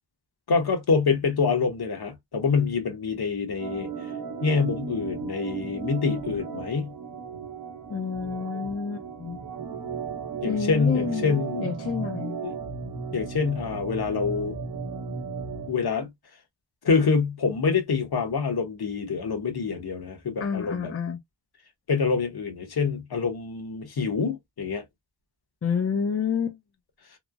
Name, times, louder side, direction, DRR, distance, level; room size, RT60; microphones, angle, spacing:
voice 1, 0.5-3.9 4.4-6.9 10.4-11.7 12.4-12.5 13.1-14.6 15.7-16.1 16.8-20.9 21.9-24.8, left 5 dB, 55° left, 1.0 m, -26 dB
Organ, 3.6-15.7, right 5 dB, 50° right, 0.8 m, -35 dB
voice 2, 7.9-9.4 10.4-12.4 20.4-21.2 25.6-26.6, left 6 dB, 35° left, 0.5 m, -29 dB
3.1 x 2.0 x 2.3 m
wide cardioid pair, 85°, 45 cm